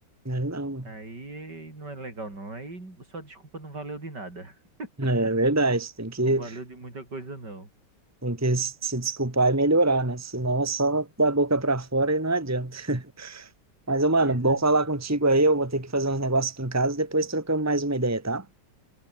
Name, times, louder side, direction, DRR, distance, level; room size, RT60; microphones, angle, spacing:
voice 1, 0.3-0.9 5.0-6.4 8.2-13.5 13.9-18.5, right 2 dB, 10° right, 2.0 m, -24 dB
voice 2, 0.8-4.9 6.2-7.7 14.2-14.7, right 2 dB, 70° right, 7.0 m, -39 dB
omnidirectional pair, 1.9 m